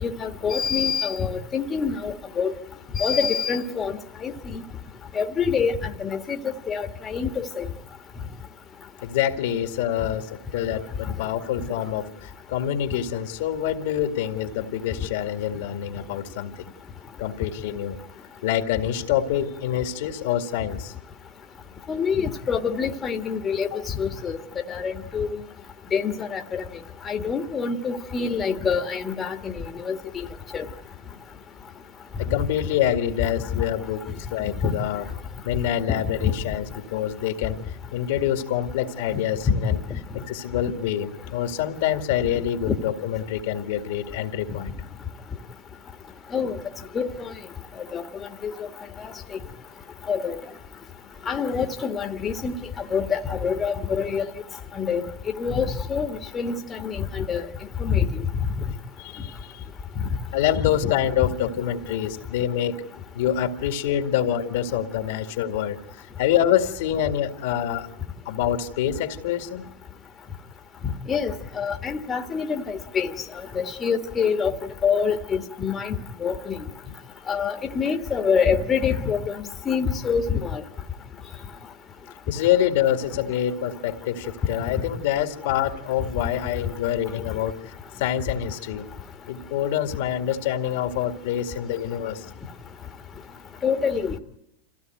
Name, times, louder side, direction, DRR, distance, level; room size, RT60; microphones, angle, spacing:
voice 1, 0.0-2.5 2.9-4.6 5.1-7.7 21.9-24.4 24.7-25.3 25.9-26.6 27.0-30.3 30.5-30.6 35.9-36.0 36.2-36.3 39.1-39.2 39.5-39.6 42.7-42.8 46.3-46.6 46.9-47.3 47.9-48.0 48.4-48.7 49.0-49.1 50.1-50.4 51.3-54.3 54.8-55.1 55.3-57.4 57.8-58.2 60.6-60.9 71.1-73.1 73.5-74.6 74.8-76.0 76.2-76.6 77.3-79.3 79.6-80.6 93.6-94.2, left 6 dB, 25° left, 4 dB, 1.5 m, -26 dB
voice 2, 9.0-16.5 17.2-18.0 18.4-20.9 23.7-23.8 32.2-35.1 35.4-39.8 40.3-44.7 59.0-59.6 60.3-62.8 63.1-67.9 68.3-69.6 82.3-88.9 89.3-92.3, left 10 dB, 65° left, 6 dB, 2.1 m, -26 dB
26.5 x 16.0 x 9.2 m, 0.84 s
hypercardioid pair, 120°, 0 cm